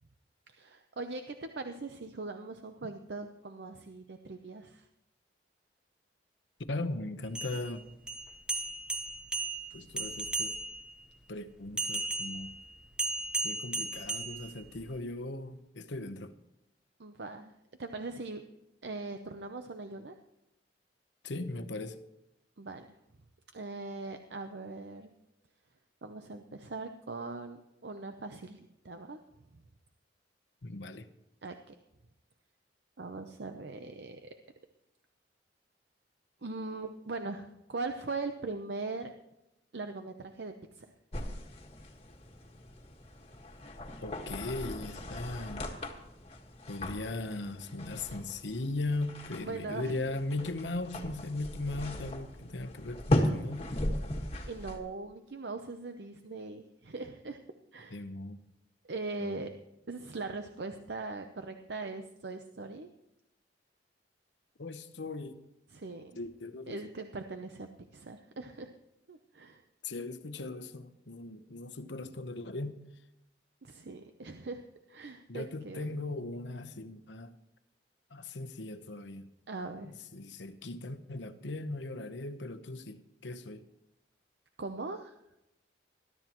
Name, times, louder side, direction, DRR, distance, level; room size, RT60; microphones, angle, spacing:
voice 1, 0.5-4.8 17.0-17.5 17.8-18.4 18.8-20.2 22.6-22.9 23.5-25.1 26.0-29.2 31.4-31.5 33.0-34.3 36.4-39.1 39.7-40.9 49.4-50.2 54.5-57.4 57.7-58.0 58.8-59.5 59.9-62.9 65.7-66.1 66.7-68.7 69.1-69.6 73.6-74.6 74.9-75.9 79.5-79.9 84.6-85.1, right 3 dB, 70° right, 0.7 m, -40 dB
voice 2, 6.7-7.8 9.7-10.6 11.3-12.6 13.4-16.3 21.2-22.0 30.6-31.1 44.0-45.7 46.7-53.7 57.9-58.4 59.2-59.6 64.6-65.4 66.2-66.9 69.8-72.8 75.3-77.3 78.1-79.3 79.8-83.6, left 2 dB, 80° left, 0.9 m, -38 dB
sound 1, 7.2-10.9 11.8-15.0, right 3 dB, 5° right, 0.8 m, -36 dB
sound 2, 41.1-54.8, left 1 dB, 35° left, 1.7 m, -37 dB
21.0 x 12.5 x 3.0 m
head